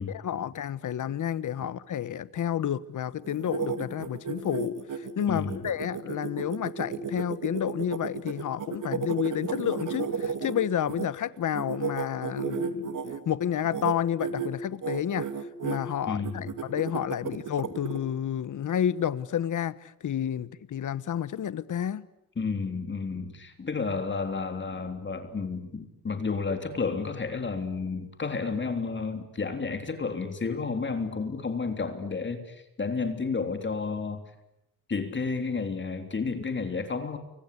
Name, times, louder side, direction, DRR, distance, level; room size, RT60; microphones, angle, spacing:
voice 1, 0.2-13.0 13.2-15.3 15.6-22.1, left 10 dB, 50° left, 1.3 m, -30 dB
sound 1, 3.2-11.1 11.5-13.2 13.6-13.9 14.2-14.5 14.8-15.8 16.2-18.0, right 6 dB, 55° right, 2.6 m, -33 dB
voice 2, 5.3-5.6 16.1-16.5 22.4-34.2 34.9-37.2, left 4 dB, 30° left, 3.4 m, -31 dB
29.5 x 24.5 x 8.4 m
cardioid pair, 110°, 38 cm